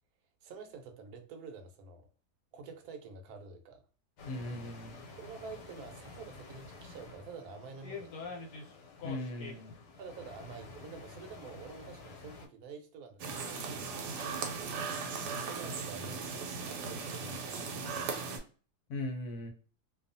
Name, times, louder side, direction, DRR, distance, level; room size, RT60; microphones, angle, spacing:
voice 1, 0.4-2.1 2.5-3.8 5.2-8.3 10.0-14.5 14.8-17.9, right 4 dB, 70° right, 5 dB, 1.0 m, -48 dB
sound 1, 4.2-12.5, left 4 dB, 90° left, 1.3 m, -48 dB
voice 2, 4.3-5.0 9.0-9.7 18.9-19.5, left 1 dB, 70° left, 4 dB, 1.0 m, -38 dB
sound 2, 13.2-18.4, right 5 dB, 85° right, 1.2 m, -38 dB
2.7 x 2.3 x 2.5 m, 0.39 s
omnidirectional pair, 1.8 m